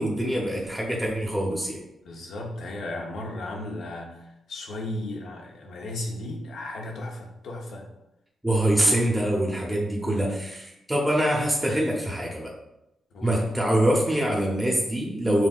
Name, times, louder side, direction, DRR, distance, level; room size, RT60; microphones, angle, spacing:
voice 1, 0.0-1.8 8.4-12.5 13.2-15.5, right 1 dB, 5° right, -3 dB, 0.9 m, -24 dB
voice 2, 2.0-7.9 10.0-10.4 13.1-13.5, left 1 dB, 75° left, 0 dB, 0.9 m, -35 dB
6.1 x 2.6 x 2.4 m, 0.88 s
cardioid pair, 65°, 0 cm